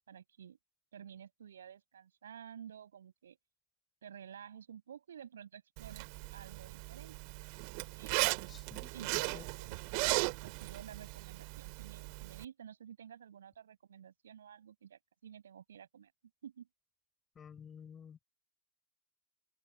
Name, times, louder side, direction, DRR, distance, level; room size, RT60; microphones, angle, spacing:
voice 1, 0.1-0.6 0.9-3.4 4.0-6.1 6.3-7.2 8.0-8.6 8.9-16.1 16.4-16.7, right 9 dB, 65° right, 6.0 m, -52 dB
Zipper (clothing), 5.8-12.4, right 40 dB or more, 45° right, 2.3 m, -37 dB
voice 2, 8.5-8.9 9.2-9.4 17.3-18.2, left 7 dB, 20° left, 4.9 m, -52 dB
open air
figure-of-eight pair, 90°, 0 cm